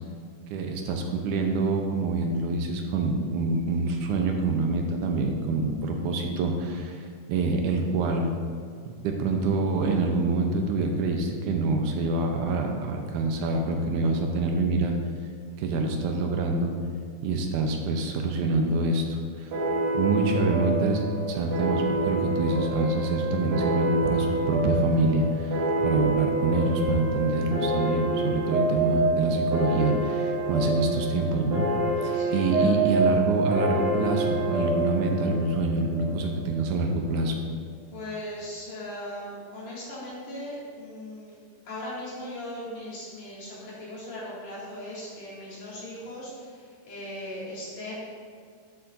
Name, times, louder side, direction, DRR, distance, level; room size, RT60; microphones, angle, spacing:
voice 1, 0.5-8.3 8.8-14.9 15.6-16.7 17.2-19.5 19.9-21.0 21.3-31.7 32.0-37.4, right 3 dB, 80° right, 3 dB, 2.1 m, -26 dB
sound 1, 19.5-36.6, right 2 dB, 60° right, 2.4 m, -27 dB
voice 2, 32.1-32.7 37.9-41.3 41.7-47.9, left 1 dB, 55° left, -8 dB, 3.3 m, -38 dB
11.5 x 7.0 x 2.6 m, 2.1 s
omnidirectional pair, 3.7 m